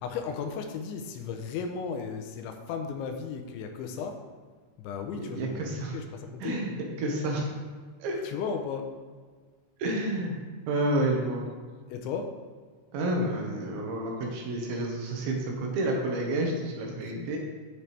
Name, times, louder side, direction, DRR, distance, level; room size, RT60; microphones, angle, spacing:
voice 1, 0.0-4.2 4.8-6.6 8.2-8.9 11.9-12.4 17.2-17.3, left 6 dB, 85° left, 5 dB, 3.0 m, -35 dB
voice 2, 5.1-6.0 6.4-6.7 7.0-7.5 8.0-8.2 9.8-10.4 10.7-11.4 12.9-17.4, right 1 dB, 75° right, 0 dB, 3.5 m, -29 dB
9.5 x 9.0 x 3.4 m, 1.5 s
omnidirectional pair, 5.4 m